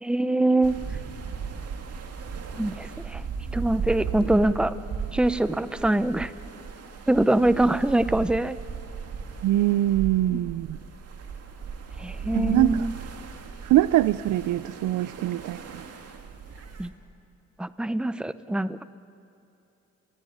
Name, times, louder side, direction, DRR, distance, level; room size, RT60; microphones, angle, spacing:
voice 1, 0.0-0.8 2.6-3.2 3.5-4.7 5.1-6.3 7.1-8.6 10.3-10.4 12.0-12.9 16.8-16.9 17.6-18.8, right 1 dB, 5° right, 14 dB, 0.7 m, -24 dB
sound 1, 0.6-16.9, right 5 dB, 55° right, 2.4 m, -37 dB
voice 2, 9.4-10.8 12.3-12.9 13.6-15.8, right 15 dB, 80° right, 16 dB, 0.6 m, -23 dB
30.0 x 19.0 x 9.5 m, 2.7 s
cardioid pair, 90°, 30 cm